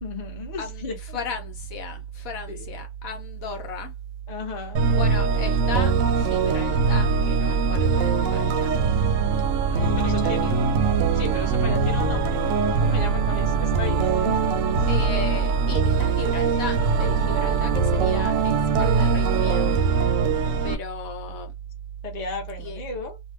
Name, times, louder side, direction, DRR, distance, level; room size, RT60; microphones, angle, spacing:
voice 1, 0.0-1.2 2.5-2.7 4.3-4.9 9.6-10.7 11.1-12.4 12.8-14.5 22.0-23.2, left 4 dB, 35° left, 0.7 m, -35 dB
voice 2, 1.1-3.9 5.0-8.8 9.8-10.5 14.9-19.7 20.6-21.5 22.6-22.8, left 1 dB, 70° left, 1.0 m, -34 dB
sound 1, 4.8-20.8, right 5 dB, 70° right, 0.8 m, -22 dB
2.6 x 2.1 x 3.4 m
omnidirectional pair, 1.6 m